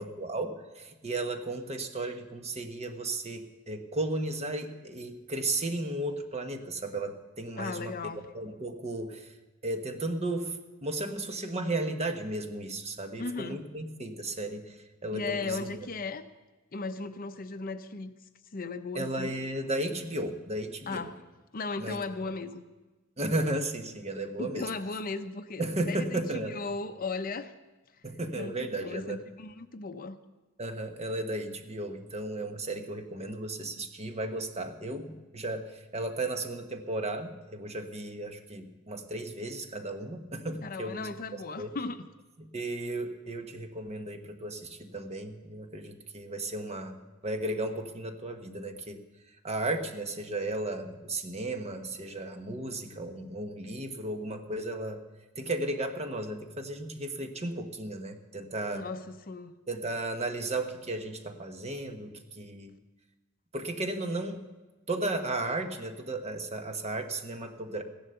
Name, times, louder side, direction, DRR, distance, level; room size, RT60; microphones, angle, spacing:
voice 1, 0.0-7.9 8.3-9.3 9.6-10.5 10.8-14.7 15.0-15.9 18.9-21.0 21.8-22.0 23.2-24.7 25.6-26.6 28.0-29.2 30.6-41.0 41.6-41.7 42.5-47.0 47.2-49.0 49.4-55.0 55.4-58.8 59.7-62.7 63.5-64.4 64.9-67.8, right 2 dB, 30° right, 6 dB, 1.3 m, -34 dB
voice 2, 7.6-8.3 13.2-13.6 15.1-16.3 16.7-18.1 18.5-19.3 20.9-21.2 21.5-22.6 24.4-27.5 28.4-30.2 40.6-42.1 58.7-59.5, left 3 dB, 45° left, 10 dB, 0.7 m, -36 dB
15.5 x 11.0 x 6.9 m, 1.2 s
head